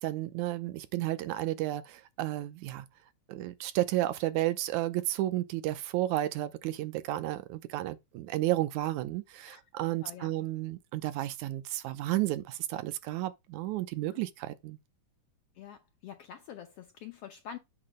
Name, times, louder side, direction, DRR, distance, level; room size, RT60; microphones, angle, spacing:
voice 1, 0.0-2.9 3.3-14.8, right 15 dB, 80° right, 2.0 m, -32 dB
voice 2, 10.0-10.3 14.1-14.2 15.5-17.6, left 9 dB, 70° left, 1.5 m, -46 dB
8.6 x 3.0 x 6.4 m
omnidirectional pair, 3.6 m